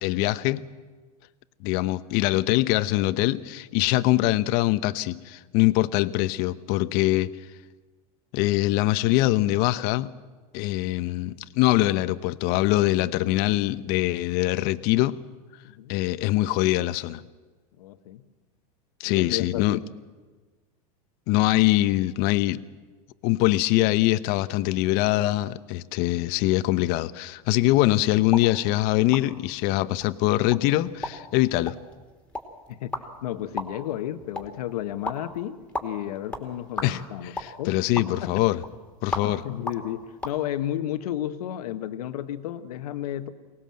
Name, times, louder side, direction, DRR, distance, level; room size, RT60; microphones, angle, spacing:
voice 1, 0.0-0.6 1.6-7.3 8.3-10.1 10.5-15.2 15.9-17.2 19.0-19.8 21.3-22.6 23.2-31.8 36.8-38.6 39.0-39.4, left 17 dB, 55° left, 14 dB, 0.9 m, -23 dB
voice 2, 15.6-15.9 17.8-18.2 19.0-19.8 32.7-37.3 37.6-37.8 38.3-38.4 39.2-43.3, left 12 dB, 75° left, 10 dB, 1.4 m, -32 dB
sound 1, 28.2-40.4, left 2 dB, 5° left, 2.9 m, -38 dB
23.5 x 19.0 x 7.7 m, 1.3 s
hypercardioid pair, 115°, 19 cm